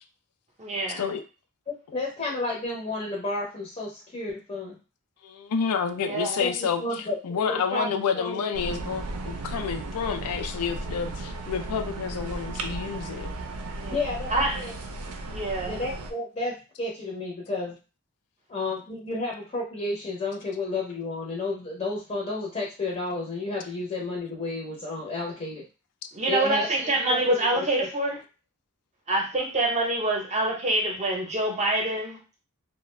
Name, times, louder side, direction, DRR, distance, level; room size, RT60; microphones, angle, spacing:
voice 1, 0.6-1.0 6.0-6.4 13.8-14.0 14.3-14.6 15.3-15.8 26.1-28.2 29.1-32.2, right 2 dB, 30° right, 1 dB, 0.6 m, -26 dB
voice 2, 1.7-4.8 6.4-8.4 13.9-14.7 15.7-17.8 18.5-25.6 26.3-26.7 27.5-27.9, left 2 dB, 30° left, -4 dB, 0.6 m, -31 dB
voice 3, 5.2-13.3, left 6 dB, 85° left, 8 dB, 0.4 m, -29 dB
sound 1, 8.5-16.1, right 2 dB, 85° right, 0.5 m, -35 dB
2.4 x 2.1 x 3.1 m, 0.33 s
head